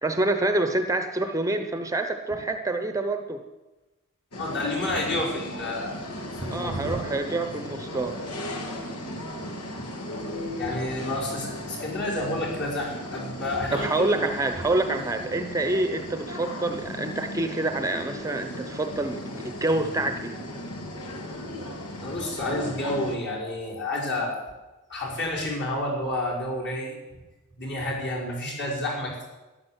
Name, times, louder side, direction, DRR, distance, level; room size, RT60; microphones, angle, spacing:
voice 1, 0.0-3.4 6.5-8.1 13.7-20.4, right 2 dB, 15° right, 7 dB, 0.8 m, -27 dB
sound 1, 4.3-23.2, left 1 dB, 85° left, 2.3 m, -36 dB
voice 2, 4.3-6.0 6.3-7.0 9.3-9.5 9.8-9.9 10.6-14.2 22.0-24.4 24.9-27.0 27.6-29.2, left 1 dB, 50° left, -4 dB, 5.5 m, -30 dB
13.5 x 11.0 x 8.1 m, 1.1 s
head